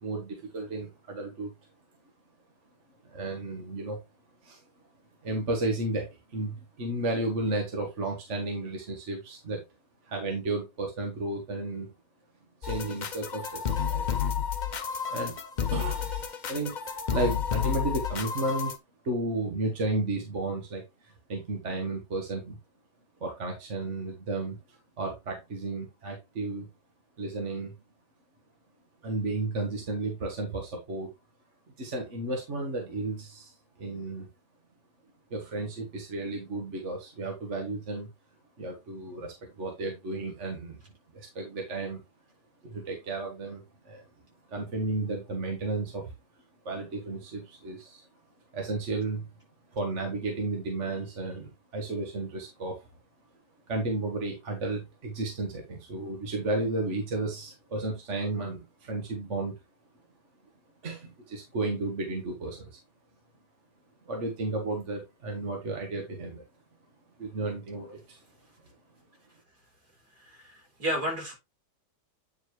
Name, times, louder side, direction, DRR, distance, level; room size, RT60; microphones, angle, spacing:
voice 1, 0.0-1.5 3.0-4.0 4.4-4.6 5.2-9.6 10.0-11.9 12.6-14.3 15.1-15.3 15.7-16.1 16.5-18.7 19.0-22.6 23.2-26.7 27.2-27.7 29.0-31.1 31.8-33.5 33.8-34.3 35.3-38.1 38.6-40.8 41.1-42.0 42.6-44.0 44.5-46.1 46.7-48.1 48.5-49.3 49.7-52.9 53.7-59.5 60.8-62.8 64.1-66.4 67.2-68.2, right 2 dB, 45° right, 2 dB, 1.8 m, -33 dB
sound 1, 12.6-18.8, left 7 dB, 65° left, 0.4 m, -31 dB
voice 2, 70.2-71.3, equal, 65° right, -2 dB, 4.5 m, -32 dB
9.2 x 4.6 x 3.2 m, 0.23 s
omnidirectional pair, 1.8 m